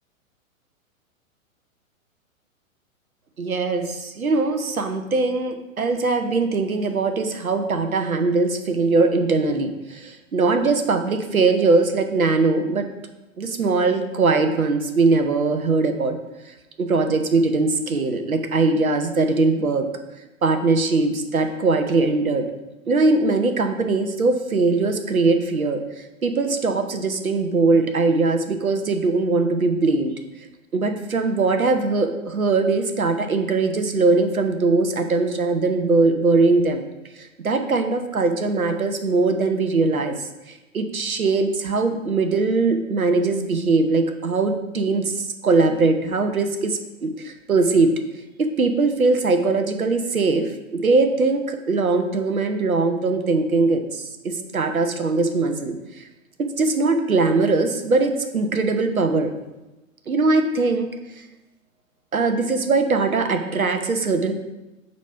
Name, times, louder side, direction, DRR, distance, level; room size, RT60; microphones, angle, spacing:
voice 1, 3.4-12.9 13.4-16.2 16.8-19.9 20.4-22.5 22.9-30.1 30.7-36.8 37.2-47.9 48.4-56.0 56.4-59.3 60.1-60.9 61.2-61.3 62.1-64.3, right 3 dB, 85° right, 6 dB, 0.8 m, -21 dB
6.5 x 4.1 x 4.3 m, 1.0 s
figure-of-eight pair, 110°, 41 cm